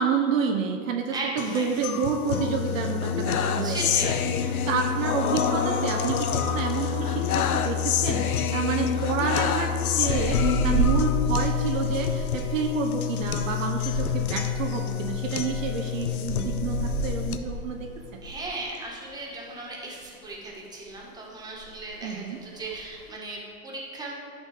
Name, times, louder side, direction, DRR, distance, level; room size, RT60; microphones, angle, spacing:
voice 1, 0.0-17.9 22.0-22.4, right 5 dB, 65° right, 3 dB, 1.0 m, -29 dB
voice 2, 1.1-1.6 3.5-4.2 18.2-24.1, right 2 dB, 10° right, -4 dB, 1.7 m, -36 dB
sound 1, 1.4-17.4, left 9 dB, 80° left, 0.8 m, -27 dB
sound 2, 5.2-11.0, right 2 dB, 30° left, 1.0 m, -42 dB
sound 3, 10.1-18.6 18.9-19.1 19.5-20.3 20.6-21.0 21.3-21.4 21.5-22.0 22.5-23.0, right 3 dB, 10° left, 1.4 m, -31 dB
12.0 x 4.1 x 5.0 m, 2.2 s
hypercardioid pair, 130°, 43 cm